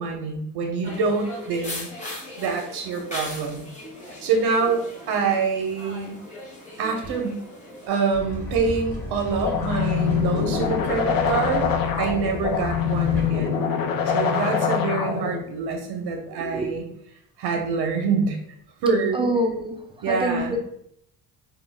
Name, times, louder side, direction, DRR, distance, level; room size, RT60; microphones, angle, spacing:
voice 1, 0.0-1.9 2.4-3.6 4.2-6.2 6.8-7.4 7.9-11.7 12.0-13.6 14.1-16.8 17.4-18.4 18.8-19.3 20.0-20.6, right 4 dB, 85° right, 3 dB, 0.6 m, -25 dB
sound 1, 0.8-7.9, left 1 dB, 20° left, 0.8 m, -38 dB
sound 2, 8.1-13.3, equal, 35° left, 1.1 m, -34 dB
sound 3, 9.4-15.4, left 7 dB, 60° left, 0.5 m, -24 dB
voice 2, 16.4-16.8 19.1-19.8 20.1-20.6, right 1 dB, 15° right, 3 dB, 0.3 m, -25 dB
2.2 x 2.1 x 3.2 m, 0.71 s
cardioid pair, 95°, 39 cm